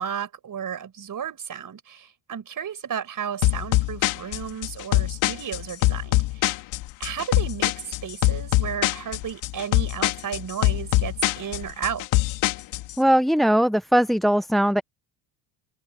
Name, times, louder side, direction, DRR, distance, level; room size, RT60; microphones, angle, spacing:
voice 1, 0.0-6.5 7.0-12.0, right 8 dB, 45° right, 5.5 m, -33 dB
sound 1, 3.4-12.9, left 17 dB, 85° left, 2.5 m, -23 dB
voice 2, 13.0-14.8, equal, ahead, 0.5 m, -20 dB
open air
cardioid pair, 105°, 47 cm